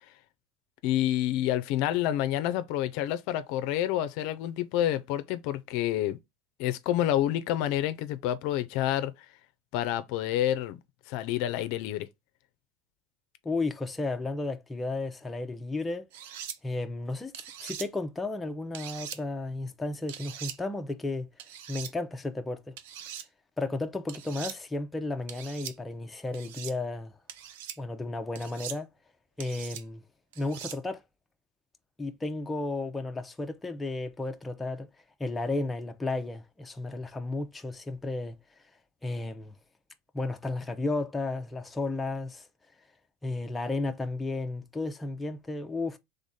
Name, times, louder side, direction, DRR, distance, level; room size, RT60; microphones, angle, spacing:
voice 1, 0.8-6.2 6.6-9.1 9.7-10.8 11.1-12.1, left 12 dB, 65° left, 0.5 m, -28 dB
voice 2, 13.4-16.1 16.6-17.3 17.6-21.3 21.7-22.7 23.6-27.1 27.8-28.9 29.4-30.0 30.4-31.0 32.0-34.9 35.2-38.4 39.0-39.6 40.1-42.5 43.2-46.0, left 2 dB, 10° left, 0.6 m, -33 dB
sound 1, 16.1-16.6 17.3-17.9 18.7-19.2 20.1-20.6 21.4-21.9 22.8-23.3 24.1-24.6 25.3-25.7 26.3-26.7 27.3-27.8 28.3-28.8 29.4-29.8 30.3-30.8, right 9 dB, 80° right, 0.6 m, -41 dB
3.6 x 3.4 x 4.1 m
supercardioid pair, 125°, 0 cm